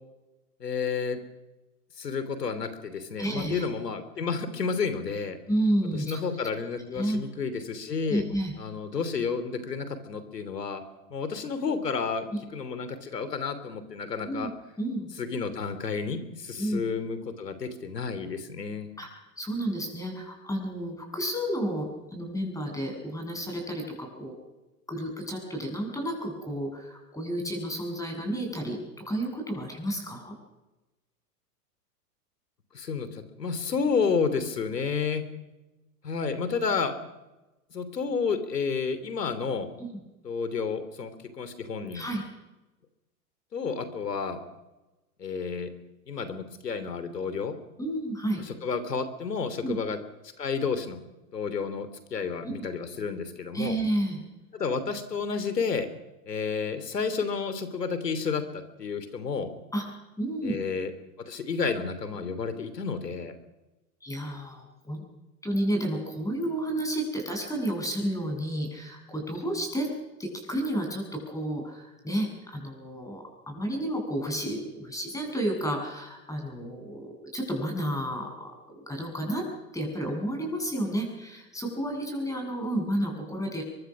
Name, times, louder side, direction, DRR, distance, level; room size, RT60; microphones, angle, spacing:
voice 1, 0.6-1.2 2.0-5.4 5.9-8.2 8.6-10.8 11.1-14.5 15.2-18.9 32.7-35.3 36.0-37.0 37.7-39.7 40.2-42.1 43.5-44.4 45.2-45.7 46.1-47.5 48.6-50.0 50.4-51.0 51.3-53.8 54.5-55.9 56.3-59.5 60.4-60.9 61.3-63.3, left 5 dB, 85° left, 11 dB, 3.2 m, -31 dB
voice 2, 3.2-3.7 5.5-6.2 6.9-7.2 8.1-8.5 12.3-12.4 14.2-14.5 14.8-15.1 16.6-16.8 19.0-19.1 19.4-24.3 24.9-30.3 39.8-39.9 41.9-42.2 47.8-48.4 49.6-49.8 52.4-52.6 53.5-54.2 59.7-59.8 60.2-60.6 64.0-65.0 65.4-69.9 70.2-79.5 79.7-83.6, right 1 dB, 5° left, 2 dB, 7.8 m, -31 dB
23.0 x 23.0 x 6.2 m, 1.1 s
hypercardioid pair, 105°, 47 cm